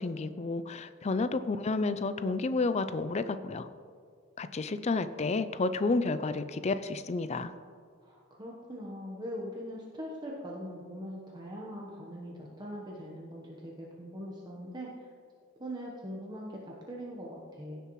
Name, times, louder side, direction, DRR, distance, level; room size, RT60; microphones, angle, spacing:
voice 1, 0.0-3.7 4.4-7.5, left 3 dB, 30° left, 12 dB, 0.4 m, -31 dB
voice 2, 8.0-14.9 15.6-17.9, equal, 20° right, -3 dB, 1.0 m, -41 dB
16.0 x 6.7 x 3.1 m, 2.1 s
head